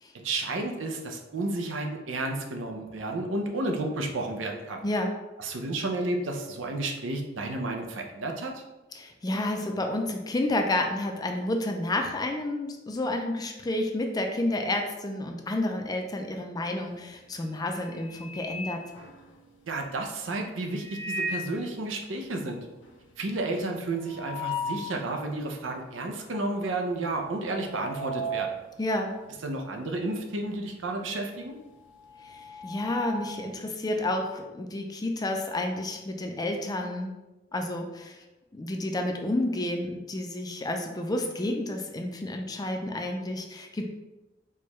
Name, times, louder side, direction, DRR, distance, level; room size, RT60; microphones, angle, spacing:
voice 1, 0.1-4.8 5.4-8.6 19.7-22.7 23.2-28.5 29.4-31.6, right 2 dB, 80° right, 3 dB, 0.6 m, -32 dB
voice 2, 4.8-5.1 8.9-18.9 28.8-29.1 32.2-37.1 37.5-38.2 38.5-43.8, left 1 dB, 20° left, 4 dB, 0.4 m, -30 dB
sound 1, 16.9-17.2 17.6-19.7 20.7-21.6 22.0-22.1 22.3-22.4 22.8-25.0 25.4-25.5 26.3-26.7 26.9-30.2 30.5-33.5, equal, 85° left, 0.6 m, -37 dB
4.4 x 2.2 x 3.0 m, 1.0 s
head